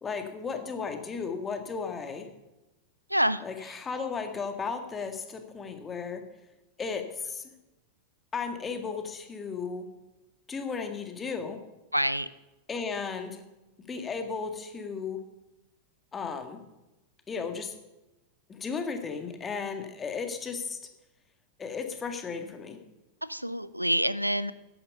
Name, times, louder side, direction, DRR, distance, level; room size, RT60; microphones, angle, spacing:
voice 1, 0.0-2.3 3.4-6.2 6.8-7.5 8.3-9.9 10.5-11.6 12.7-13.4 13.9-15.2 16.1-16.6 17.3-17.7 18.5-20.8 21.6-22.8, left 5 dB, 20° left, 6 dB, 1.9 m, -35 dB
voice 2, 3.1-3.4 11.9-12.3 23.2-24.5, equal, 90° right, 17 dB, 0.5 m, -27 dB
14.5 x 10.5 x 5.5 m, 1.0 s
figure-of-eight pair, 90°, 0 cm